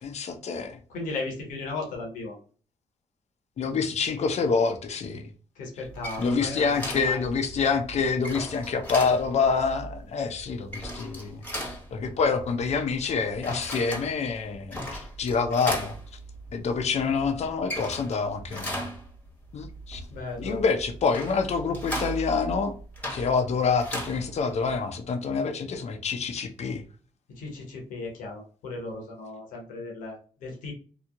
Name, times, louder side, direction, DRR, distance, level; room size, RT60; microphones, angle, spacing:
voice 1, 0.0-0.8 3.6-5.2 6.2-15.9 16.5-18.9 19.5-20.0 20.4-22.7 23.1-26.8, left 5 dB, 55° left, 0.6 m, -27 dB
voice 2, 0.9-2.3 5.6-7.2 20.1-20.6 27.4-30.7, left 3 dB, 80° left, 1.0 m, -36 dB
sound 1, 5.8-24.8, equal, 10° left, 1.1 m, -38 dB
3.0 x 2.1 x 2.3 m
supercardioid pair, 50°, 14 cm